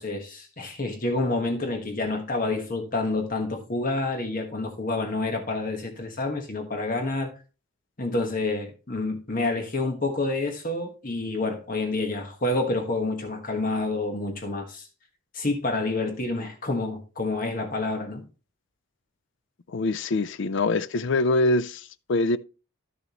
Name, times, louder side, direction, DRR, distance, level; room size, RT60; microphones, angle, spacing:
voice 1, 0.0-7.3 8.0-14.9 15.3-18.2, left 2 dB, 40° left, 1.3 m, -28 dB
voice 2, 19.7-22.4, left 2 dB, 60° left, 0.4 m, -24 dB
12.0 x 6.9 x 3.0 m
head